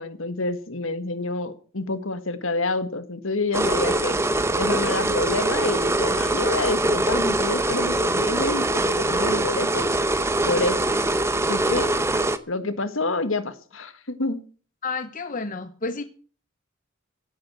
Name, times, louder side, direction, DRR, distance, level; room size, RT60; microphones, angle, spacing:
voice 1, 0.0-4.1 4.6-9.9 10.5-10.8 11.5-11.9 12.5-14.4, left 2 dB, 65° left, 11 dB, 1.7 m, -28 dB
sound 1, 3.5-12.4, right 2 dB, 10° right, 0.8 m, -23 dB
voice 2, 14.8-16.0, left 3 dB, 40° left, 9 dB, 0.9 m, -30 dB
16.0 x 9.0 x 7.5 m, 0.41 s
head